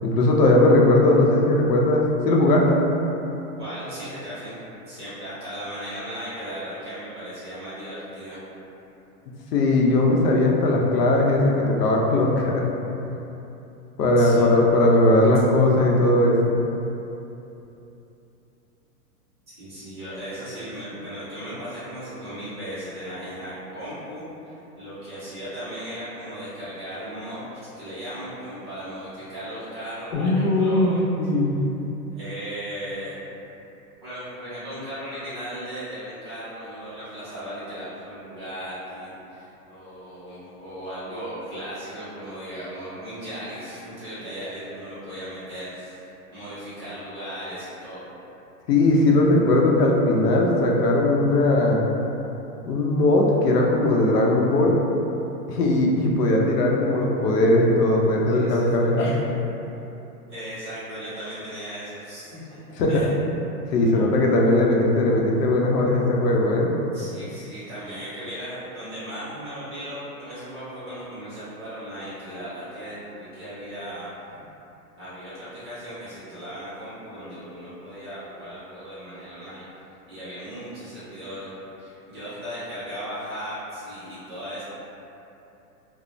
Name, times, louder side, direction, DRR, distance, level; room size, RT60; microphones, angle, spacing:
voice 1, 0.0-2.8 9.5-12.7 13.0-13.1 14.0-16.6 30.1-31.5 48.7-51.8 52.6-54.8 55.5-59.1 62.8-63.1 63.7-66.7, left 2 dB, 85° left, -1 dB, 0.6 m, -19 dB
voice 2, 3.6-4.6 4.9-8.4 14.2-14.5 19.6-31.0 32.1-33.1 34.0-48.1 58.3-59.2 60.3-62.6 62.9-63.1 63.9-64.0 66.9-74.1 75.0-79.6 80.1-81.5 81.8-84.6, equal, 20° right, -14 dB, 0.4 m, -37 dB
2.4 x 2.0 x 3.0 m, 3.0 s
hypercardioid pair, 150°, 46 cm